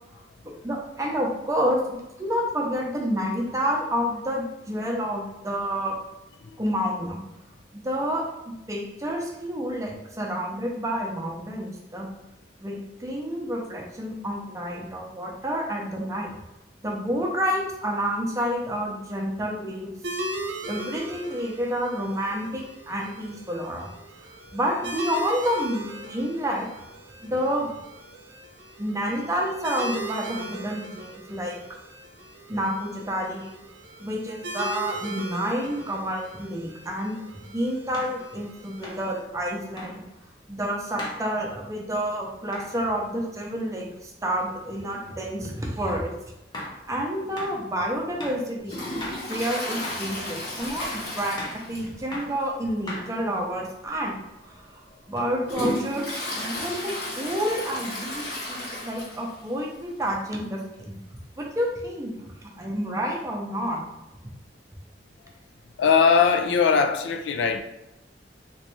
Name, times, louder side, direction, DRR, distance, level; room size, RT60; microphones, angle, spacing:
voice 1, 0.4-6.0 6.6-7.2 7.7-8.3 8.7-12.1 12.6-16.4 16.8-19.9 20.6-23.9 24.5-26.7 27.2-27.7 28.8-31.8 32.5-33.5 34.0-40.0 40.5-46.1 46.9-48.8 49.3-51.4 51.7-54.2 54.5-61.0 61.4-63.8, equal, 20° right, 0.6 m, -29 dB
sound 1, 20.0-39.2, right 1 dB, 70° right, 0.6 m, -39 dB
sound 2, 36.9-37.0 37.9-38.2 38.8-39.1 39.8-40.0 41.0-41.2 42.5-42.7 45.8-45.9 46.5-46.8 47.4-47.6 48.2-48.5 49.0-49.3 49.8-50.1 50.6-50.8 51.4-51.6 52.1-52.4 52.9-53.4, left 1 dB, 25° left, 0.7 m, -37 dB
Toilet flush, 48.7-52.1 52.4-52.5 52.9-53.0 53.8-54.0 54.5-59.4 59.7-59.8 60.0-60.1 61.2-61.3, left 1 dB, 60° left, 1.2 m, -33 dB
voice 2, 65.8-67.6, left 6 dB, 80° left, 0.3 m, -20 dB
3.1 x 3.0 x 3.1 m
head